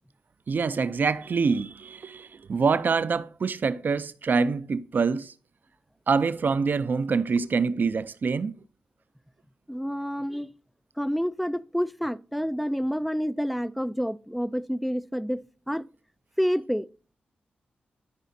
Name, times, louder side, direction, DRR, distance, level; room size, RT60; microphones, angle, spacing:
voice 1, 0.5-5.3 6.1-8.6, right 5 dB, 55° right, 0.5 m, -25 dB
voice 2, 9.7-10.5 11.0-15.4 15.7-15.8 16.4-16.9, equal, ahead, 0.4 m, -28 dB
13.0 x 4.9 x 2.7 m
supercardioid pair, 45°, 4 cm